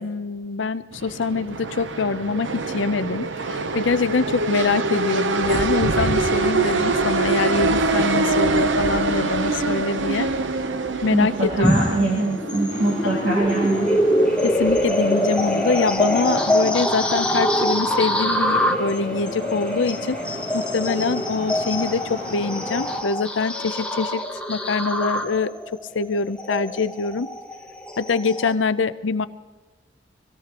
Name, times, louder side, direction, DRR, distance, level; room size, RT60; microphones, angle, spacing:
voice 1, 0.0-3.3 3.7-10.3 11.0-11.7 13.0-13.4 14.4-20.2 20.5-24.2 24.5-27.3 28.0-29.3, left 4 dB, 85° left, 13 dB, 0.6 m, -24 dB
sound 1, 0.9-16.9, right 3 dB, 85° right, 0.8 m, -25 dB
voice 2, 11.1-13.9, right 2 dB, 60° right, -4 dB, 2.8 m, -23 dB
sound 2, 11.6-28.5, equal, 5° left, 0.9 m, -24 dB
sound 3, 12.7-23.0, equal, 45° right, 3.0 m, -36 dB
24.5 x 17.0 x 3.0 m, 1.3 s
head